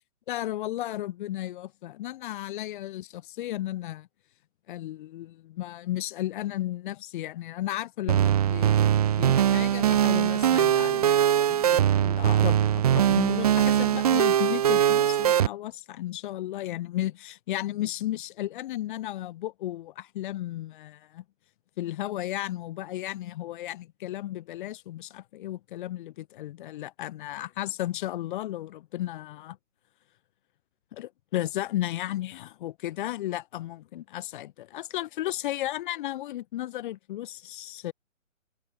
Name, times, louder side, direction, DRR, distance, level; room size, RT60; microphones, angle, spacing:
voice 1, 0.3-4.1 4.7-21.2 21.8-29.6 30.9-37.9, left 14 dB, 40° left, 7.6 m, -34 dB
sound 1, 8.1-15.5, right 10 dB, 30° right, 0.6 m, -22 dB
hypercardioid pair, 150°, 40 cm